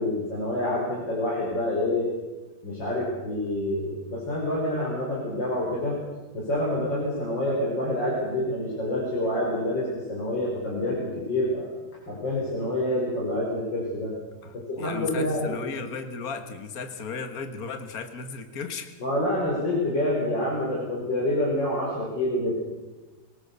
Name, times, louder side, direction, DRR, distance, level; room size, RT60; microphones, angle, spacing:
voice 1, 0.0-2.1 2.6-6.0 6.3-11.7 12.1-14.1 14.5-15.7 19.0-22.5, left 1 dB, 85° left, -4 dB, 5.4 m, -27 dB
voice 2, 14.4-18.9, left 5 dB, 55° left, 8 dB, 2.1 m, -35 dB
23.5 x 18.5 x 6.9 m, 1.2 s
omnidirectional pair, 1.9 m